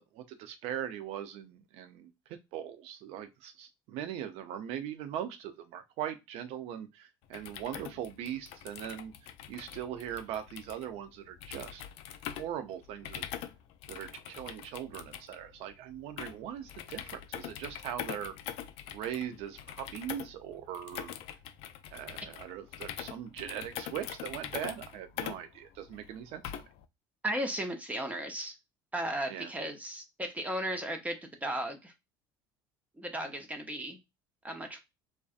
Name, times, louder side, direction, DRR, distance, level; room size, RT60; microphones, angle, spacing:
voice 1, 0.0-2.1 2.5-11.8 12.4-13.3 13.9-18.3 18.9-21.2 21.9-26.5 29.3-29.5, right 10 dB, 65° right, 9 dB, 0.6 m, -40 dB
sound 1, 7.2-26.9, left 10 dB, 60° left, 0.4 m, -43 dB
voice 2, 27.2-28.5 28.9-31.9 33.0-34.0 34.4-34.8, right 1 dB, 15° right, 4 dB, 0.7 m, -35 dB
2.6 x 2.1 x 2.4 m, 0.22 s
hypercardioid pair, 80°, 11 cm